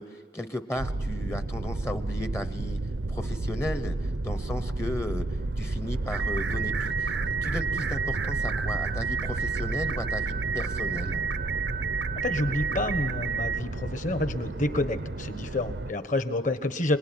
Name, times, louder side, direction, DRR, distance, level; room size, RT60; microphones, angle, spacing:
voice 1, 0.0-2.8 3.1-5.3 5.6-11.2, left 1 dB, 15° left, 10 dB, 0.8 m, -35 dB
sound 1, 0.8-15.9, right 2 dB, 70° right, 0.7 m, -32 dB
sound 2, 6.1-13.6, right 7 dB, 85° right, 1.0 m, -31 dB
voice 2, 12.2-17.0, left 1 dB, 45° left, 10 dB, 1.3 m, -28 dB
26.0 x 19.5 x 9.9 m, 1.5 s
head